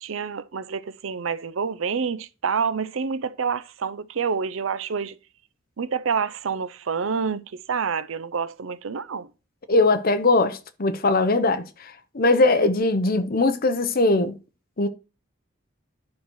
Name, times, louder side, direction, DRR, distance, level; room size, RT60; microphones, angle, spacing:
voice 1, 0.0-5.2 5.8-9.3, right 6 dB, 75° right, 0.6 m, -28 dB
voice 2, 9.7-11.7 12.1-14.3 14.8-14.9, left 2 dB, 45° left, 0.9 m, -20 dB
10.5 x 5.9 x 4.7 m
head